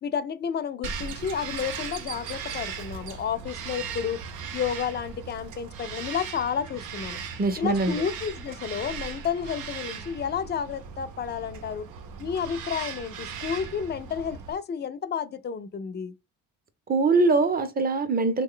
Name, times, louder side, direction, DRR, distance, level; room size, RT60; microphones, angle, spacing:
voice 1, 0.0-4.2 4.5-7.2 7.6-11.8 12.2-16.1, left 7 dB, 35° left, 0.4 m, -31 dB
Bird vocalization bird call bird song, 0.8-14.5, right 6 dB, 90° right, 0.7 m, -38 dB
voice 2, 7.4-8.0 16.9-18.4, right 3 dB, 30° right, 0.6 m, -23 dB
3.1 x 2.2 x 3.6 m
cardioid pair, 90°, 30 cm